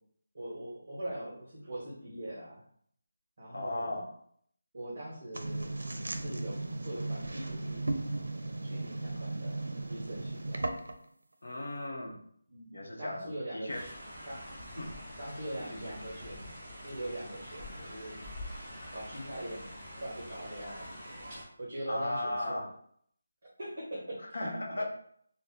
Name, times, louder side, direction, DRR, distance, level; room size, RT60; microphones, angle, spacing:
voice 1, 0.3-2.6 3.4-4.0 4.7-5.8 6.2-7.9 8.6-10.7 12.5-13.9 14.2-14.4 15.2-16.5 16.8-18.2 18.9-19.7 20.0-20.9 21.6-22.7 23.6-24.4 24.8-24.9, right 1 dB, 30° right, -6 dB, 1.0 m, -42 dB
voice 2, 3.5-4.1 11.4-12.2 12.7-13.9 14.8-14.9 15.6-15.9 21.9-22.7 24.3-24.8, left 1 dB, 55° left, -1 dB, 0.8 m, -36 dB
sound 1, 5.3-11.1, right 2 dB, 75° right, 0.5 m, -36 dB
sound 2, 13.7-21.4, equal, 5° right, 0.9 m, -45 dB
2.8 x 2.2 x 3.6 m, 0.63 s
figure-of-eight pair, 180°, 0 cm